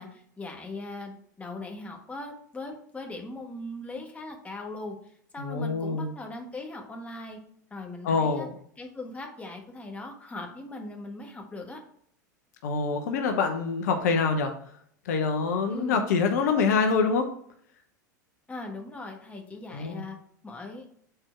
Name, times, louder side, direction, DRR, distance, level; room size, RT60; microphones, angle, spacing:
voice 1, 0.0-7.4 7.7-8.5 8.8-11.8 15.7-16.0 18.5-20.2 20.4-20.8, left 2 dB, 15° left, 2 dB, 1.5 m, -39 dB
voice 2, 5.4-6.1 8.0-8.5 12.6-14.5 15.1-17.3 19.7-20.0, left 5 dB, 60° left, 5 dB, 0.8 m, -25 dB
6.7 x 4.4 x 4.4 m, 0.64 s
figure-of-eight pair, 85°, 10 cm